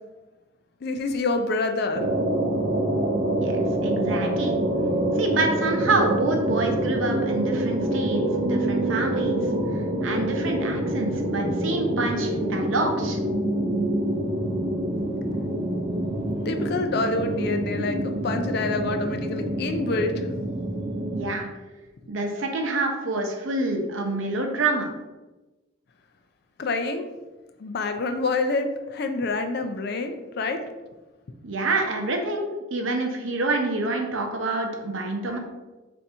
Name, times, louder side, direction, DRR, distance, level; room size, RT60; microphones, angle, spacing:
voice 1, 0.8-2.0 16.5-20.1 26.6-27.1 27.6-30.6, left 3 dB, 50° left, 7 dB, 0.4 m, -27 dB
sound 1, 1.9-21.3, right 1 dB, 35° right, 0.4 m, -26 dB
voice 2, 3.4-4.6 5.2-9.4 10.0-13.2 21.1-21.5 22.1-24.9 31.4-35.4, right 2 dB, 75° right, 3 dB, 0.7 m, -27 dB
3.4 x 2.6 x 4.2 m, 1.2 s
head